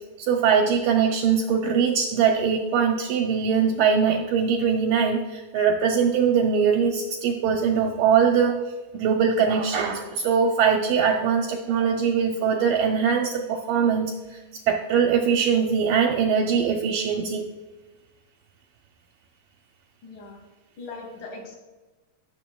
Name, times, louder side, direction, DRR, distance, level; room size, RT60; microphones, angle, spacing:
voice 1, 0.2-8.5 8.9-14.1 14.7-17.5, right 6 dB, 80° right, 3 dB, 2.0 m, -22 dB
voice 2, 20.0-20.4 20.8-21.6, left 3 dB, 60° left, 0 dB, 3.1 m, -39 dB
16.0 x 7.2 x 2.3 m, 1.2 s
omnidirectional pair, 4.3 m